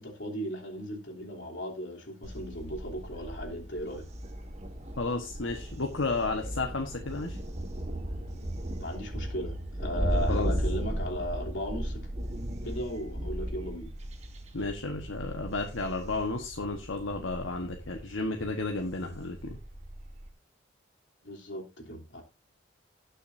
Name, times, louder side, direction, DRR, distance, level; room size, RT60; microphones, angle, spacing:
voice 1, 0.0-4.1 8.8-12.0 12.6-13.9 21.2-22.2, equal, 65° left, 0 dB, 3.2 m, -37 dB
Thunder, 2.2-20.3, right 1 dB, 35° right, 1.6 m, -36 dB
voice 2, 5.0-7.4 10.3-10.5 14.5-19.6, left 3 dB, 80° left, 3 dB, 1.4 m, -32 dB
19.0 x 6.6 x 2.7 m, 0.28 s
head